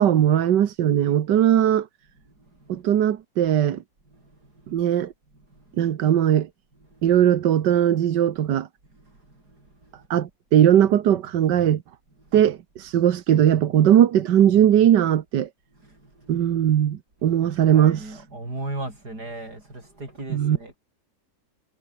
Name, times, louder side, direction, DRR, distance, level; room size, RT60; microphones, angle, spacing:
voice 1, 0.0-1.9 2.7-3.8 4.7-5.1 5.8-6.5 7.0-8.7 10.1-11.8 12.3-15.5 16.3-18.2 20.3-20.6, right 10 dB, 90° right, 1.7 m, -19 dB
voice 2, 2.3-2.8 4.1-4.8 5.3-5.9 6.7-7.1 8.9-10.1 12.2-12.5 15.7-16.4 17.2-20.8, right 2 dB, 70° right, 8.1 m, -39 dB
omnidirectional pair, 1.8 m